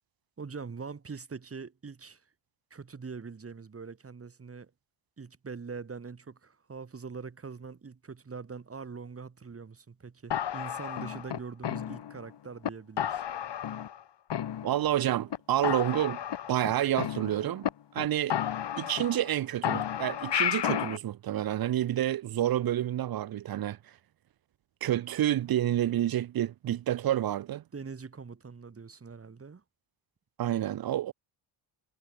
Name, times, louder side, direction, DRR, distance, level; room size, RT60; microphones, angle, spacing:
voice 1, 0.4-2.2 2.7-4.7 5.2-13.2 27.7-29.6, right 5 dB, 25° right, 2.2 m, -43 dB
sound 1, 10.3-12.3 12.6-12.7 13.0-14.0 14.3-15.0 15.3-15.4 15.6-17.7 18.0-18.1 18.3-19.3 19.6-21.0, left 10 dB, 55° left, 1.9 m, -32 dB
voice 2, 14.6-16.2 16.5-17.7 17.9-18.4 18.8-23.8 24.8-27.6 30.4-31.1, right 12 dB, 45° right, 0.6 m, -29 dB
cardioid pair, 120°, 50 cm